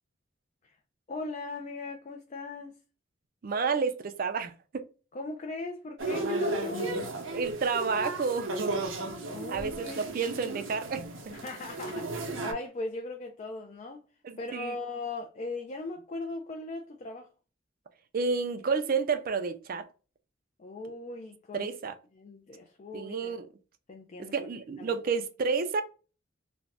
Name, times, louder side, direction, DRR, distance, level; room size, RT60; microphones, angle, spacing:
voice 1, 1.1-2.8 5.1-7.1 9.3-10.1 11.3-14.0 14.4-17.3 20.6-21.7 22.1-23.4 23.9-24.5 24.8-25.0, left 2 dB, 35° left, 0.4 m, -39 dB
voice 2, 3.4-4.9 7.3-8.8 9.5-11.4 14.2-14.8 18.1-19.8 21.5-21.9 22.9-23.5 24.2-25.8, right 5 dB, 50° right, 0.4 m, -30 dB
sound 1, 6.0-12.5, right 2 dB, 85° right, 0.7 m, -34 dB
2.5 x 2.1 x 3.3 m
head